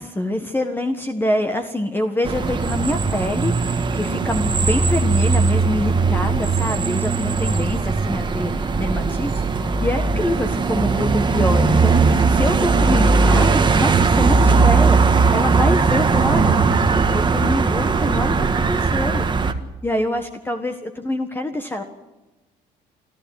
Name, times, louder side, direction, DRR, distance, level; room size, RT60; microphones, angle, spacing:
voice 1, 0.0-15.0 15.3-16.8 17.1-19.2 19.8-21.8, left 1 dB, 10° left, 6 dB, 1.6 m, -25 dB
sound 1, 2.2-19.5, right 4 dB, 25° right, 1.6 m, -18 dB
28.0 x 13.0 x 9.4 m, 1.1 s
cardioid pair, 110°, 17 cm